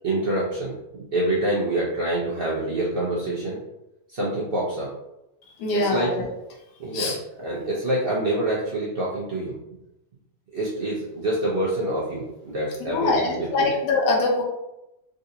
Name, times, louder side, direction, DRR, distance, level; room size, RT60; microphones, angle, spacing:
voice 1, 0.0-0.8 1.1-3.6 4.1-4.9 5.7-6.1 6.8-9.5 10.5-13.7, right 1 dB, 75° right, -7 dB, 0.5 m, -26 dB
voice 2, 5.6-6.2 6.9-7.2 12.8-14.4, left 3 dB, 75° left, -1 dB, 1.4 m, -23 dB
3.8 x 2.5 x 2.7 m, 0.91 s
omnidirectional pair, 1.9 m